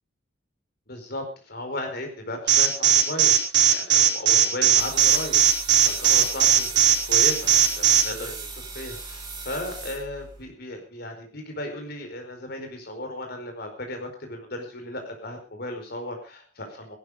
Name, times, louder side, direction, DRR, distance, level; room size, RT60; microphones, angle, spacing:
voice 1, 0.9-3.4 3.7-5.4 5.8-17.0, left 1 dB, 55° left, 4 dB, 4.8 m, -35 dB
Alarm, 2.5-8.0, right 10 dB, 65° right, 4.2 m, -17 dB
sound 1, 4.8-10.4, right 3 dB, 20° right, 6.3 m, -38 dB
17.5 x 12.0 x 5.0 m, 0.36 s
head